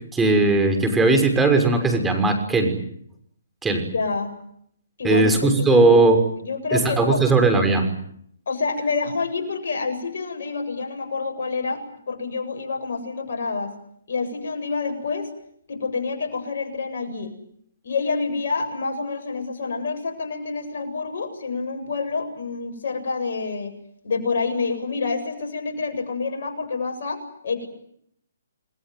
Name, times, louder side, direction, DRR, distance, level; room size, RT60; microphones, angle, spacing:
voice 1, 0.1-2.8 3.6-3.8 5.0-6.2 6.7-7.8, right 3 dB, 10° right, 5 dB, 6.3 m, -18 dB
voice 2, 3.9-4.3 5.0-5.9 6.4-7.2 8.5-13.7 14.1-15.3 15.7-17.3 17.8-23.7 24.0-27.7, left 4 dB, 60° left, 5 dB, 7.8 m, -27 dB
29.5 x 21.0 x 9.5 m, 0.70 s
hypercardioid pair, 145°, 0 cm